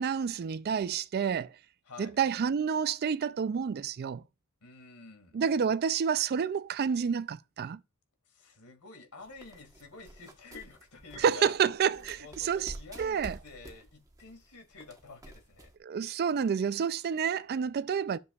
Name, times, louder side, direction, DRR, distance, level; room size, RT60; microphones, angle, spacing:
voice 1, 0.0-1.5 2.0-4.2 5.3-7.8 11.2-13.4 15.8-18.2, right 7 dB, 45° right, 0.3 m, -29 dB
voice 2, 1.9-2.2 4.6-5.4 8.3-11.6 11.9-15.7, left 4 dB, 85° left, 2.2 m, -49 dB
sound 1, 9.2-15.8, right 1 dB, 15° right, 1.2 m, -49 dB
11.0 x 6.9 x 2.4 m
head